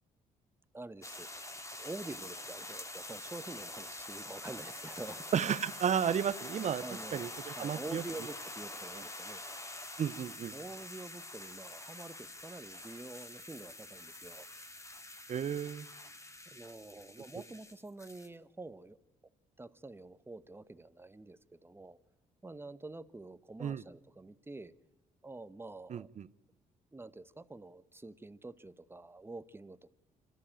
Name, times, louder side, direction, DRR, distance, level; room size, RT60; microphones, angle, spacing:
voice 1, 0.7-1.3 1.8-5.2 6.8-9.8 10.5-14.5 16.5-19.0 19.6-22.0 22.4-24.7 25.2-26.1 26.9-29.9, right 2 dB, 15° right, 14 dB, 1.1 m, -47 dB
sound 1, 1.0-18.3, left 2 dB, 20° left, 2.4 m, -46 dB
voice 2, 5.3-6.8 7.1-8.0 10.0-10.5 15.3-15.9 23.6-23.8 25.9-26.3, right 8 dB, 50° right, 19 dB, 0.7 m, -33 dB
25.5 x 13.5 x 8.9 m, 1.0 s
supercardioid pair, 70°, 16 cm